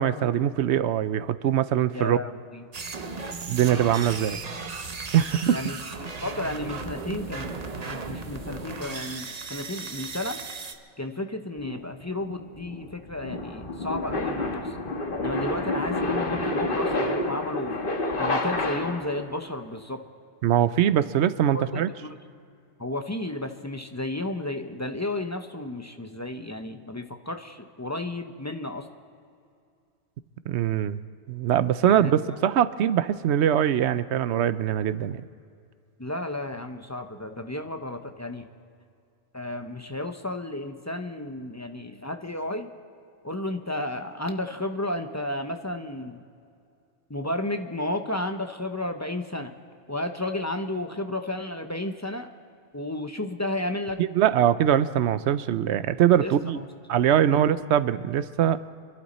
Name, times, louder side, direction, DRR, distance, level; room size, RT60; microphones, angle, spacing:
voice 1, 0.0-2.2 3.5-4.4 5.1-5.6 20.4-21.9 30.5-31.0 31.3-35.2 54.0-56.6 56.9-58.6, right 10 dB, 75° right, 14 dB, 0.8 m, -22 dB
voice 2, 1.9-2.6 5.5-7.5 7.9-10.4 11.0-14.8 15.2-17.8 18.2-20.0 21.5-22.2 22.8-28.9 31.8-32.4 36.0-38.5 39.3-42.7 43.2-46.2 47.1-49.5 49.9-52.3 52.7-54.0 56.2-56.6 57.3-57.4, left 1 dB, 20° left, 5 dB, 0.6 m, -33 dB
sound 1, 2.7-10.7, right 4 dB, 40° right, 0.8 m, -36 dB
sound 2, 11.6-19.2, left 2 dB, 50° left, 1.5 m, -29 dB
27.0 x 11.5 x 4.2 m, 2.4 s
omnidirectional pair, 1.2 m